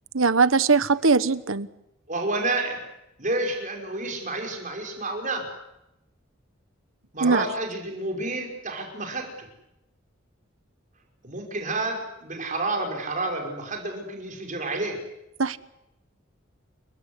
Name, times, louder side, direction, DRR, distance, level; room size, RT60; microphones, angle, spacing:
voice 1, 0.1-1.7 7.2-7.4 15.4-15.6, right 4 dB, 80° right, 15 dB, 1.2 m, -20 dB
voice 2, 2.1-2.8 3.2-5.5 7.1-9.3 11.2-15.0, right 2 dB, 40° right, 2 dB, 5.7 m, -29 dB
30.0 x 17.0 x 9.7 m, 0.86 s
head